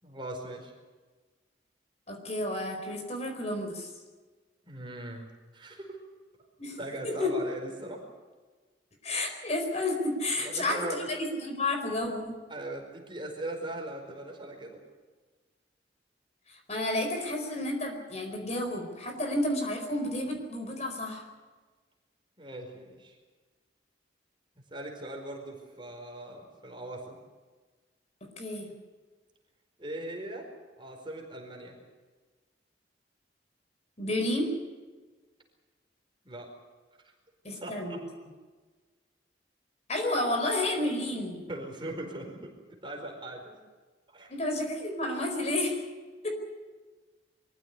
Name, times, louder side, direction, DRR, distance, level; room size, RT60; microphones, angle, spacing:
voice 1, 0.0-0.7 4.6-5.3 5.5-6.0 6.8-8.0 10.4-11.0 12.5-14.8 22.4-23.2 24.7-27.2 29.8-30.5 30.8-31.8 36.2-36.5 37.5-38.0 41.5-43.6 44.1-44.3, right 1 dB, 25° right, 2 dB, 4.7 m, -40 dB
voice 2, 2.1-3.9 6.6-6.8 7.0-7.3 9.0-12.4 16.5-21.2 28.4-28.7 34.0-34.5 37.4-38.0 39.9-41.4 44.3-45.8 46.2-46.3, left 1 dB, 35° left, 3 dB, 4.6 m, -31 dB
24.0 x 15.5 x 9.7 m, 1.4 s
head